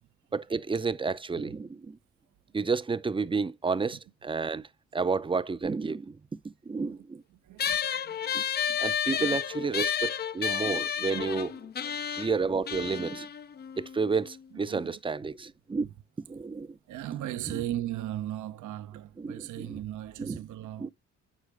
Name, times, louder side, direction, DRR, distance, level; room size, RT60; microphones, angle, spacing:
voice 1, 0.3-2.0 2.5-4.7 4.9-6.2 6.4-7.2 8.3-8.4 8.8-11.5 12.1-13.3 13.8-15.9 16.3-16.8 17.5-17.6 19.2-19.8 20.2-20.4 20.8-20.9, right 4 dB, 15° right, 0.5 m, -31 dB
voice 2, 7.4-8.4 9.2-9.4 9.7-9.8 11.0-11.4 14.7-15.0 16.9-20.9, right 13 dB, 80° right, 0.7 m, -38 dB
sound 1, 7.6-14.4, left 8 dB, 35° left, 0.4 m, -31 dB
7.3 x 6.4 x 3.3 m
cardioid pair, 90°, 30 cm